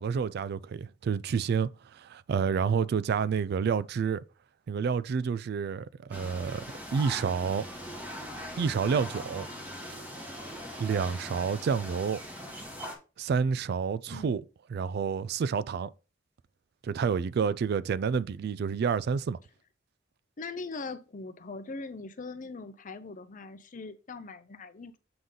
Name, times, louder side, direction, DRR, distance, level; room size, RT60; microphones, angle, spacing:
voice 1, 0.0-4.2 4.7-6.6 6.9-7.7 8.6-9.5 10.8-12.2 13.2-14.4 14.7-15.9 16.8-19.4, right 6 dB, 55° right, 0.3 m, -29 dB
sound 1, 6.1-13.0, equal, 10° right, 1.6 m, -41 dB
voice 2, 14.1-14.4 20.4-25.0, left 3 dB, 45° left, 0.6 m, -41 dB
7.8 x 3.7 x 3.9 m
head